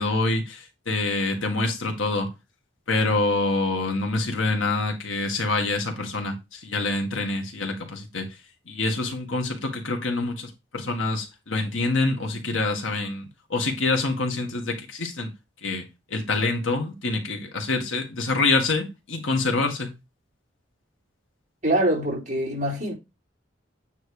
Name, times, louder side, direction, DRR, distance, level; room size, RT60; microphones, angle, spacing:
voice 1, 0.0-2.3 2.9-8.3 8.7-13.2 13.5-15.3 15.6-15.8 16.1-19.9, left 3 dB, 85° left, 1.8 m, -26 dB
voice 2, 21.6-22.9, right 1 dB, 40° right, 3.9 m, -24 dB
9.2 x 3.3 x 4.8 m
head